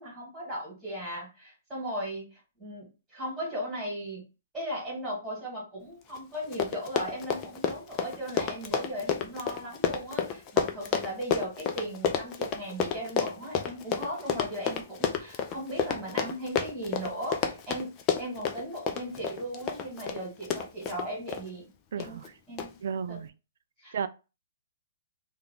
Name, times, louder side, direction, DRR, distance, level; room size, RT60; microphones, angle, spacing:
voice 1, 0.0-4.2 4.5-17.9 18.2-21.7 22.0-22.2 22.5-22.7 23.1-23.2 23.8-24.0, equal, 5° right, 2.2 m, -37 dB
Run, 6.2-6.3 6.4-21.4 22.0-22.3 22.6-22.7, left 7 dB, 25° left, 0.5 m, -30 dB
voice 2, 21.9-22.4 22.8-23.3 23.9-24.1, right 7 dB, 65° right, 0.3 m, -33 dB
3.4 x 2.4 x 3.8 m
hypercardioid pair, 155°, 0 cm